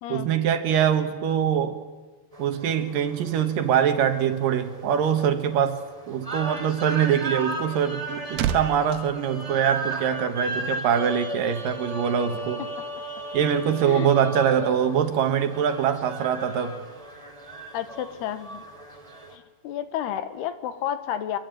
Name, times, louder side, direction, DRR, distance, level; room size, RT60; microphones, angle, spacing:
voice 1, 0.1-1.8 2.4-12.6 13.3-16.8, right 8 dB, 65° right, 8 dB, 3.1 m, -23 dB
sound 1, 2.3-19.3, right 2 dB, 10° right, 2.5 m, -36 dB
sound 2, 7.9-10.3 10.6-10.8, right 9 dB, 80° right, 3.0 m, -32 dB
voice 2, 17.7-18.6 19.3-21.4, left 10 dB, 85° left, 11 dB, 3.3 m, -31 dB
25.5 x 24.0 x 9.3 m, 1.3 s
omnidirectional pair, 4.6 m